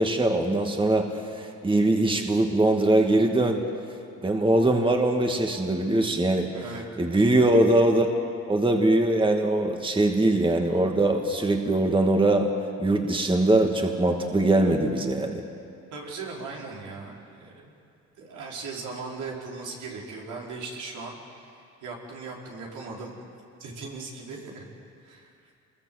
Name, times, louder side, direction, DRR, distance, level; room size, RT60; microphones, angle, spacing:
voice 1, 0.0-3.6 4.2-6.5 7.0-8.1 8.5-12.5 12.8-15.4, right 1 dB, 15° right, 3 dB, 2.3 m, -22 dB
voice 2, 6.5-6.8 15.9-17.7 18.2-23.1 23.6-24.7 25.0-25.3, right 4 dB, 85° right, -2 dB, 5.1 m, -38 dB
28.0 x 21.5 x 7.9 m, 2.5 s
cardioid pair, 90°, 30 cm